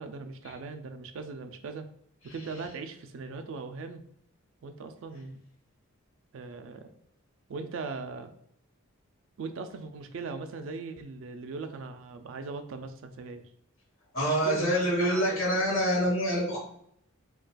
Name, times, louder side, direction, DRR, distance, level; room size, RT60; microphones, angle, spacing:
voice 1, 0.0-1.9 2.2-4.0 4.6-5.4 6.3-6.9 7.5-8.3 9.4-13.5 14.3-15.7, right 4 dB, 60° right, 8 dB, 0.3 m, -39 dB
voice 2, 14.1-16.6, equal, 60° left, -3 dB, 1.1 m, -26 dB
3.9 x 2.3 x 2.2 m, 0.69 s
head